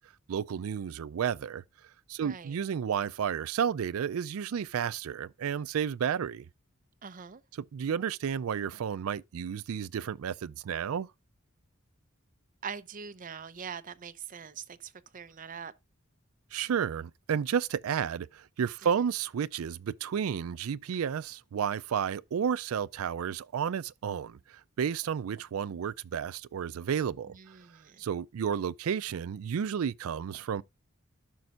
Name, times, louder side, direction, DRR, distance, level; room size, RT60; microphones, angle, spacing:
voice 1, 0.3-1.6 2.1-6.4 7.7-11.1 16.5-24.4 24.8-27.3 28.0-30.6, right 7 dB, 85° right, 0.4 m, -32 dB
voice 2, 2.2-2.6 7.0-7.4 12.6-15.7 27.3-28.0, right 6 dB, 40° right, 0.6 m, -43 dB
12.0 x 5.2 x 2.4 m
head